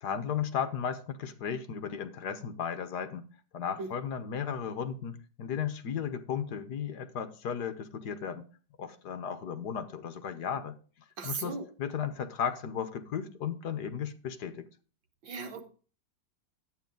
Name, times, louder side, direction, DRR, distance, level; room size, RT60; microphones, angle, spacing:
voice 1, 0.0-3.3 3.5-8.4 8.8-10.8 11.2-14.6, left 7 dB, 60° left, 1.5 m, -35 dB
voice 2, 11.2-11.7 15.2-15.6, right 4 dB, 80° right, 2.2 m, -37 dB
11.0 x 9.0 x 3.8 m
omnidirectional pair, 2.0 m